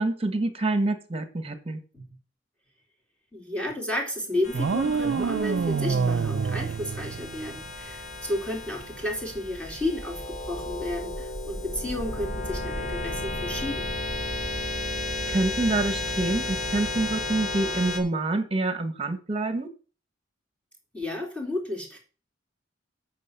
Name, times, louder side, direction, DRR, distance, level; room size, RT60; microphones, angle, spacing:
voice 1, 0.0-1.8 15.3-19.7, right 2 dB, 30° right, 10 dB, 1.3 m, -27 dB
voice 2, 3.3-14.0 20.9-22.0, left 1 dB, 5° left, -1 dB, 2.7 m, -32 dB
sound 1, 4.4-18.0, left 1 dB, 40° left, 2.9 m, -33 dB
sound 2, 4.5-7.7, right 5 dB, 65° right, 0.4 m, -27 dB
8.4 x 6.1 x 6.8 m, 0.37 s
head